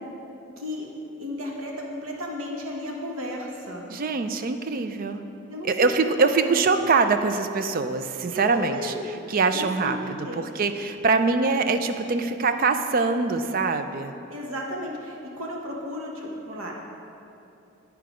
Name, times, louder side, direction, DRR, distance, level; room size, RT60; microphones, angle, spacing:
voice 1, 0.6-0.9 1.2-3.9 5.5-6.6 8.3-9.0 9.5-10.7 14.3-16.8, left 1 dB, 75° right, -1 dB, 1.2 m, -34 dB
voice 2, 3.9-5.2 5.6-8.9 9.3-10.0 10.3-14.1, right 4 dB, 45° right, 9 dB, 0.4 m, -23 dB
11.0 x 4.6 x 5.0 m, 2.8 s
head